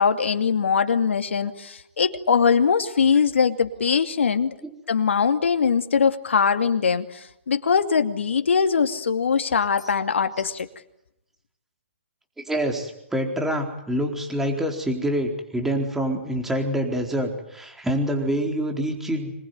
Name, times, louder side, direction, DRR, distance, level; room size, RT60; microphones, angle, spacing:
voice 1, 0.0-4.5 4.9-10.7, left 6 dB, 75° left, 7 dB, 2.6 m, -21 dB
voice 2, 12.5-19.3, equal, 5° right, 3 dB, 4.2 m, -26 dB
26.0 x 22.5 x 9.6 m, 0.83 s
hypercardioid pair, 140°, 7 cm